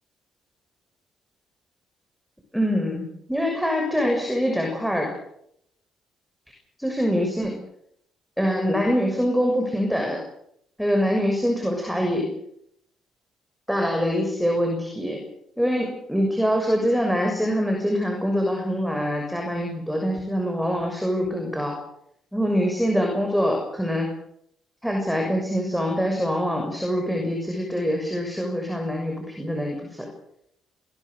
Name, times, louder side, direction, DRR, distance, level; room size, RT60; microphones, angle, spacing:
voice 1, 2.5-3.0 3.3-5.1 6.8-7.5 8.4-10.2 10.8-12.3 13.7-15.2 15.6-21.8 22.3-24.1 24.8-30.1, equal, ahead, 2 dB, 6.7 m, -24 dB
26.0 x 20.0 x 6.7 m, 0.74 s
cardioid pair, 90°, 0 cm